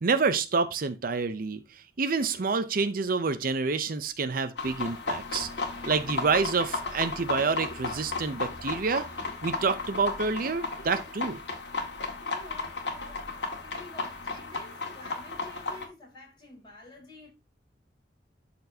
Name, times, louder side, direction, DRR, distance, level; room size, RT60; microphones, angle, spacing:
voice 1, 0.0-5.5 5.8-9.1 9.4-11.4, right 4 dB, 55° right, 0.6 m, -28 dB
sound 1, 4.6-15.9, left 3 dB, 75° left, 1.9 m, -34 dB
voice 2, 12.2-17.3, left 2 dB, 25° left, 4.1 m, -49 dB
12.0 x 4.3 x 2.7 m
head